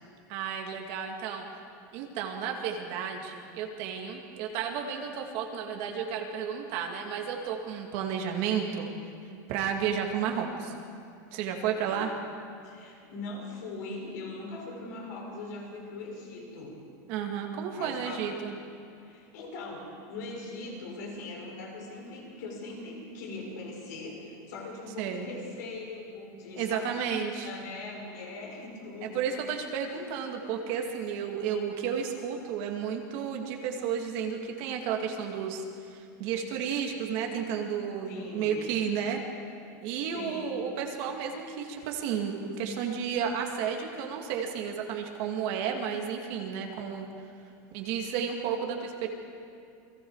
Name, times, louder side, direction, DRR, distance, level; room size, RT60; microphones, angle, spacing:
voice 1, 0.3-1.4 1.9-8.9 9.5-10.8 11.3-12.1 17.1-18.5 25.0-25.3 26.6-27.5 29.0-39.2 39.8-47.1 47.7-49.1, right 7 dB, 40° right, 2 dB, 2.2 m, -32 dB
voice 2, 11.8-12.2 12.6-16.7 17.7-18.3 19.0-29.2 29.9-30.1 30.4-30.5 38.0-38.7 40.1-40.6, left 2 dB, 65° left, -1 dB, 6.9 m, -41 dB
29.0 x 21.5 x 4.8 m, 2.5 s
supercardioid pair, 180°, 10 cm